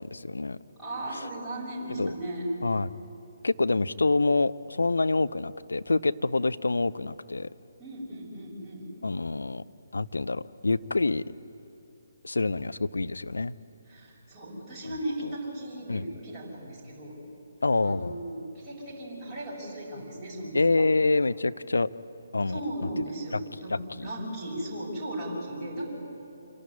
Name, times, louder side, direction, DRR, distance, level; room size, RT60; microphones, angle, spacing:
voice 1, 0.0-0.6 2.0-2.1 2.6-2.9 3.4-7.5 9.0-9.6 9.9-11.2 12.2-13.5 15.9-16.0 17.6-18.2 20.5-21.9 22.3-22.6 23.7-24.1, left 3 dB, 70° left, 15 dB, 0.5 m, -26 dB
voice 2, 0.8-2.5 7.8-8.9 13.9-17.2 17.8-20.9 22.5-23.8 24.0-25.9, right 1 dB, 5° right, -11 dB, 6.2 m, -36 dB
27.0 x 12.0 x 9.7 m, 2.9 s
figure-of-eight pair, 140°, 0 cm